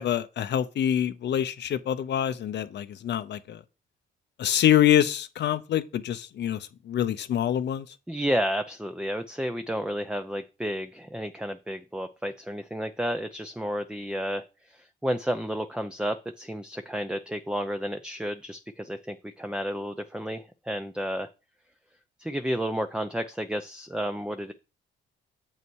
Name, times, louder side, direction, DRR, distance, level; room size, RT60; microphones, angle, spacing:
voice 1, 0.0-3.6 4.4-6.6 6.9-7.8, left 10 dB, 65° left, 0.7 m, -25 dB
voice 2, 8.1-21.3 22.2-24.5, equal, 5° right, 0.6 m, -31 dB
7.6 x 5.5 x 4.7 m
cardioid pair, 90°, 20 cm